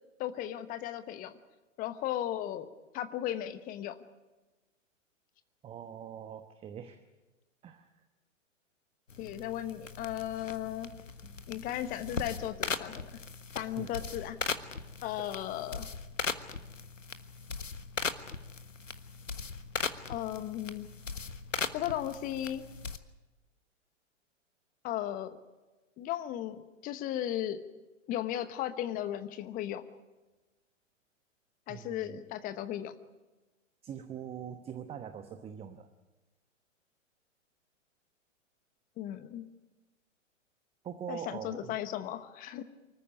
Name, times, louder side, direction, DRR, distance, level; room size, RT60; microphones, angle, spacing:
voice 1, 0.2-1.3 1.8-2.7 2.9-4.0 9.2-10.9 11.5-13.2 13.5-14.4 15.0-15.9 20.1-20.9 21.7-22.6 24.8-25.4 26.0-27.6 28.1-29.9 31.7-32.9 39.0-39.4 41.1-42.6, left 12 dB, 20° left, 11 dB, 1.1 m, -36 dB
voice 2, 5.6-7.0 7.6-7.9 11.2-11.4 13.8-13.9 15.2-15.3 31.7-32.2 33.8-35.9 40.8-41.8, right 8 dB, 15° right, 9 dB, 1.1 m, -43 dB
sound 1, 9.1-23.0, left 5 dB, 80° left, 1.4 m, -39 dB
25.0 x 14.5 x 9.9 m, 1.1 s
figure-of-eight pair, 110°, 38 cm